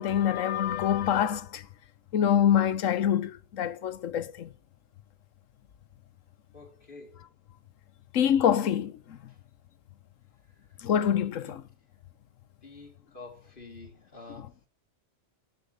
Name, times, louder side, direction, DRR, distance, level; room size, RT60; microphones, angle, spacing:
voice 1, 0.0-1.6 2.1-4.5 8.1-9.2 10.8-11.6 14.4-14.5, left 9 dB, 80° left, 1.2 m, -25 dB
voice 2, 6.5-7.2 11.4-11.5 12.6-14.5, left 3 dB, 40° left, 2.9 m, -48 dB
14.5 x 6.9 x 5.4 m
omnidirectional pair, 1.3 m